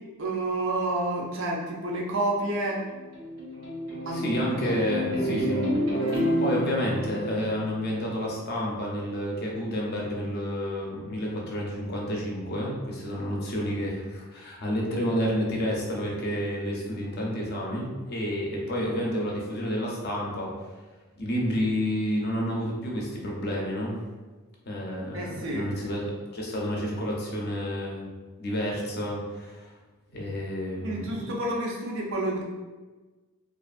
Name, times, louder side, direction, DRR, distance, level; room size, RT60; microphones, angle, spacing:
voice 1, 0.2-2.8 4.1-4.2 4.6-4.8 25.1-25.8 30.8-32.4, right 2 dB, 60° right, -2 dB, 0.5 m, -29 dB
sound 1, 2.9-8.3, equal, 85° right, 1.3 m, -29 dB
voice 2, 4.1-5.6 6.4-20.5 21.2-24.0 24.7-26.0 26.3-28.1 28.4-29.7 30.1-31.2, equal, 45° left, -2 dB, 0.5 m, -30 dB
2.5 x 2.4 x 2.4 m, 1.3 s
head